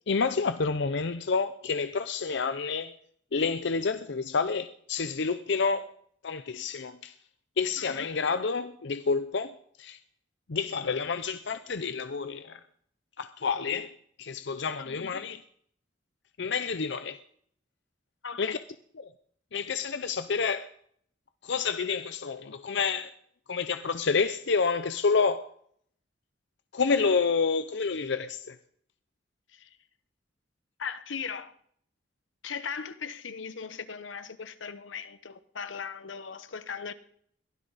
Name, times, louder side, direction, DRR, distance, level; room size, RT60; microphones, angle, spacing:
voice 1, 0.1-2.9 3.3-5.9 6.2-7.1 7.6-10.0 10.5-12.6 13.2-15.4 16.4-17.2 18.4-18.6 19.0-19.1 19.5-20.7 21.4-23.1 23.5-25.5 26.7-28.6, left 5 dB, 65° left, 0.6 m, -29 dB
voice 2, 14.9-15.2 18.2-18.6 29.5-29.7 30.8-31.5 32.4-36.9, left 6 dB, 90° left, 1.1 m, -38 dB
22.0 x 15.5 x 4.1 m
head